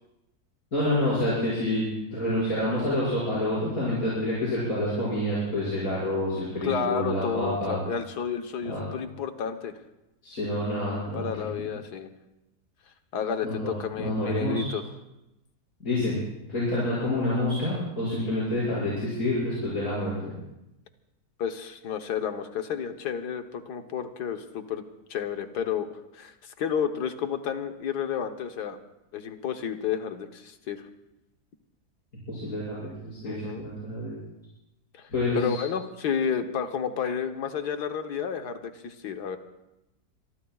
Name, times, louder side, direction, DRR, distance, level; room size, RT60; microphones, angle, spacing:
voice 1, 0.7-7.8 8.6-8.8 10.2-11.5 13.4-13.7 14.0-14.7 15.8-16.2 16.5-20.3 32.3-32.8 33.0-34.1 35.1-35.6, left 1 dB, 60° left, -9 dB, 6.6 m, -28 dB
voice 2, 6.6-9.7 11.1-12.1 13.1-14.8 21.4-24.8 25.1-25.9 26.1-28.8 29.1-30.8 33.2-33.6 35.0-35.1 35.3-39.4, left 7 dB, 80° left, 7 dB, 1.7 m, -31 dB
26.5 x 23.0 x 2.4 m, 0.93 s
omnidirectional pair, 1.7 m